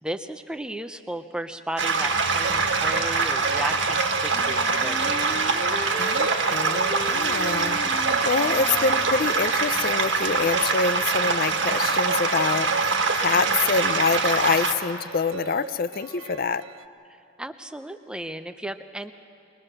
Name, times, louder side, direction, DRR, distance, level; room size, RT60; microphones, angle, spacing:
voice 1, 0.0-5.8 17.1-19.1, right 1 dB, 5° right, 9 dB, 0.5 m, -35 dB
sound 1, 1.8-14.8, right 4 dB, 70° right, 1.5 m, -24 dB
sound 2, 2.3-16.8, right 4 dB, 90° right, 0.7 m, -36 dB
Wind instrument woodwind instrument, 4.3-9.4, left 1 dB, 25° left, 0.9 m, -36 dB
voice 2, 6.0-16.6, left 5 dB, 45° left, 15 dB, 0.4 m, -26 dB
22.5 x 21.0 x 6.6 m, 2.6 s
head